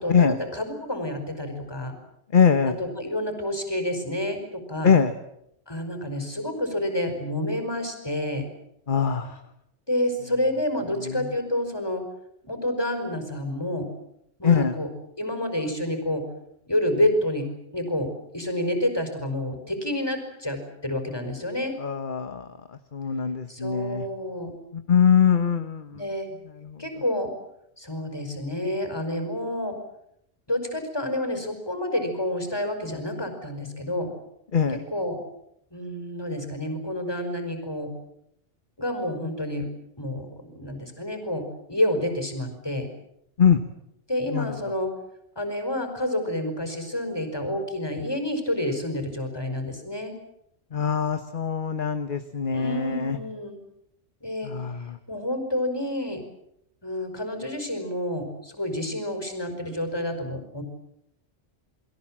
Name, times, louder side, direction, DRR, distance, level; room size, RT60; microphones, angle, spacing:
voice 1, 0.0-2.0 2.6-5.0 5.7-8.5 9.9-12.0 12.4-13.9 14.4-14.9 15.2-16.3 16.7-21.8 23.5-24.5 25.9-26.3 26.8-27.3 27.8-29.8 30.5-34.1 34.7-35.2 35.7-37.9 38.8-39.7 40.0-42.9 44.1-44.9 45.4-50.2 52.5-53.6 54.2-54.5 55.1-56.2 56.8-60.6, left 1 dB, 20° left, 6 dB, 5.3 m, -29 dB
voice 2, 2.3-2.7 4.8-5.1 8.9-9.4 11.1-11.3 14.4-14.7 21.8-22.5 22.9-24.0 24.9-26.0 26.6-26.8 34.5-34.8 43.4-43.6 44.3-44.5 50.7-53.2 54.4-55.0, left 7 dB, 45° left, 9 dB, 1.3 m, -22 dB
29.5 x 22.5 x 7.5 m, 0.78 s
omnidirectional pair, 1.3 m